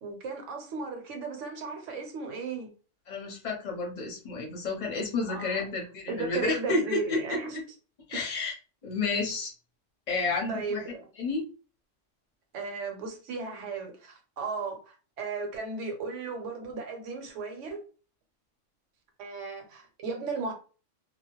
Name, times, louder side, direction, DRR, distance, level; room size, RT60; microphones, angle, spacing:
voice 1, 0.0-2.7 5.3-5.6 6.1-7.6 10.5-11.1 12.5-17.8 19.2-20.5, right 4 dB, 70° right, 1.0 m, -35 dB
voice 2, 3.1-7.2 8.1-8.5 8.8-9.5 10.1-10.8 11.2-11.4, left 3 dB, 40° left, 0.8 m, -30 dB
2.3 x 2.1 x 2.9 m
omnidirectional pair, 1.3 m